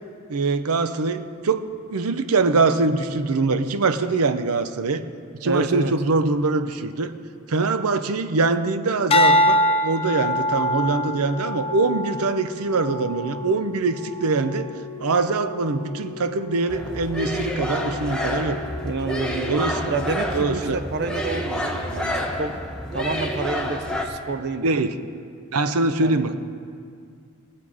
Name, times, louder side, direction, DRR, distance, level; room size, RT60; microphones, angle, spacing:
voice 1, 0.3-5.0 5.4-7.1 7.5-14.7 15.0-18.6 19.5-19.9 20.3-20.8 24.6-24.9 25.5-26.3, right 3 dB, 85° right, 11 dB, 0.7 m, -23 dB
voice 2, 5.4-5.9 18.8-19.6 19.9-22.5 22.9-24.8 26.0-26.2, right 3 dB, 50° right, 9 dB, 0.7 m, -29 dB
sound 1, 9.1-13.5 14.1-14.5, left 1 dB, 25° left, 0.5 m, -23 dB
Organ, 10.0-20.9 22.0-22.2, left 7 dB, 45° left, 1.0 m, -39 dB
sound 2, 16.7-24.0, equal, 5° left, 0.9 m, -28 dB
19.5 x 7.5 x 4.9 m, 2.3 s
head